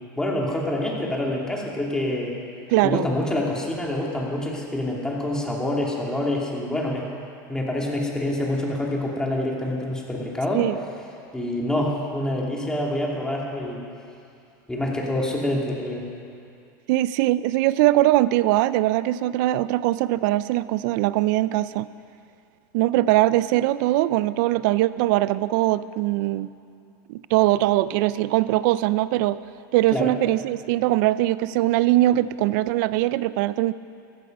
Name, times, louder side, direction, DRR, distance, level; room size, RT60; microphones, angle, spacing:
voice 1, 0.2-2.4 2.8-7.1 7.5-10.7 11.3-13.8 14.7-16.1 29.9-30.1, left 1 dB, 5° left, -2 dB, 2.6 m, -26 dB
voice 2, 2.7-3.1 10.5-10.7 16.9-21.9 22.7-26.5 27.1-29.4 29.7-33.7, right 16 dB, 65° right, 16 dB, 0.5 m, -21 dB
15.0 x 14.5 x 5.4 m, 2.5 s
supercardioid pair, 125°, 11 cm